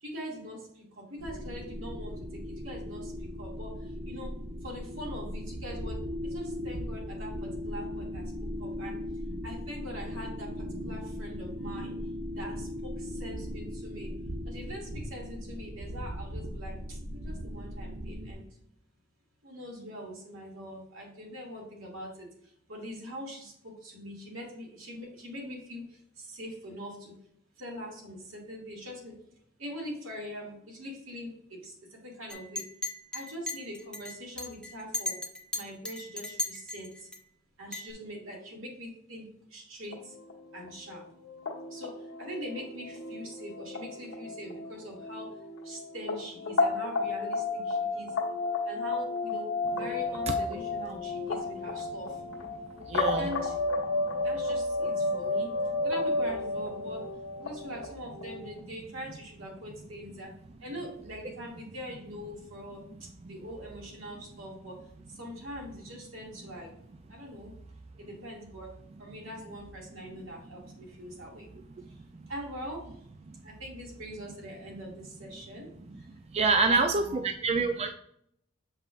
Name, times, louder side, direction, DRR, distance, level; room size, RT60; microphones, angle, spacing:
voice 1, 0.0-3.1 3.4-3.8 4.1-4.3 4.6-8.3 8.6-9.0 9.4-11.9 12.3-14.1 14.5-18.4 19.4-22.3 22.7-25.8 26.2-27.1 27.6-29.2 29.6-32.6 33.1-35.2 35.5-37.1 37.6-40.1 40.5-41.0 41.7-41.9 42.2-45.3 45.6-48.1 48.7-52.1 53.2-53.5 54.2-55.5 55.8-57.0 57.4-60.3 60.6-62.8 63.3-64.8 65.1-66.7 67.1-67.5 68.0-68.7 69.0-71.5 72.3-72.9 73.4-75.7 76.5-77.2, equal, 80° right, -2 dB, 2.2 m, -42 dB
sound 1, 1.2-18.3, equal, 60° right, 1.2 m, -38 dB
Chink clink, 32.3-37.2 37.7-37.9, left 2 dB, 5° left, 0.8 m, -36 dB
sound 2, 39.9-58.6, left 2 dB, 75° left, 1.4 m, -32 dB
voice 2, 52.9-53.3 54.1-54.2 55.0-55.2 63.2-63.3 71.8-71.9 72.1-72.2 73.3-73.4 76.3-77.9, right 3 dB, 30° right, 5 dB, 0.4 m, -27 dB
6.9 x 5.5 x 2.5 m, 0.71 s
head